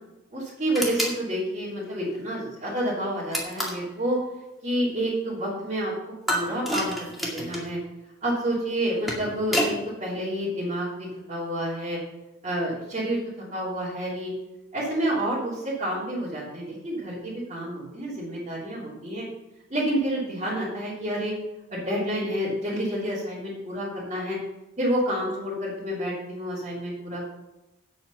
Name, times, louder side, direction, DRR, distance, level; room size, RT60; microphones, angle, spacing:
voice 1, 0.3-4.2 4.6-7.8 8.2-12.0 12.4-14.3 14.7-19.2 19.7-21.3 21.7-24.4 24.8-27.2, right 1 dB, 35° right, -9 dB, 3.2 m, -29 dB
sound 1, 0.7-1.2 3.3-3.9 6.3-7.7 8.8-9.8, equal, ahead, 2.1 m, -28 dB
8.7 x 8.4 x 5.6 m, 0.99 s
head